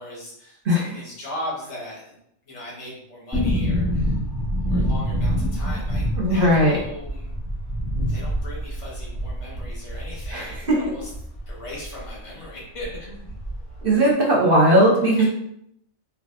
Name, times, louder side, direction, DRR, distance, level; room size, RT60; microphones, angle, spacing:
voice 1, 0.0-2.1 2.5-4.2 4.7-7.3 8.1-11.1 11.5-13.3 15.2-15.3, left 1 dB, 70° left, -4 dB, 1.4 m, -38 dB
voice 2, 0.6-1.0 6.1-6.8 10.3-10.8 13.8-15.2, right 1 dB, 50° right, -3 dB, 1.0 m, -18 dB
sound 1, 3.3-12.1 12.4-12.5 12.8-13.8 14.1-14.2, equal, ahead, 1.2 m, -26 dB
3.9 x 2.6 x 2.6 m, 0.72 s
omnidirectional pair, 1.3 m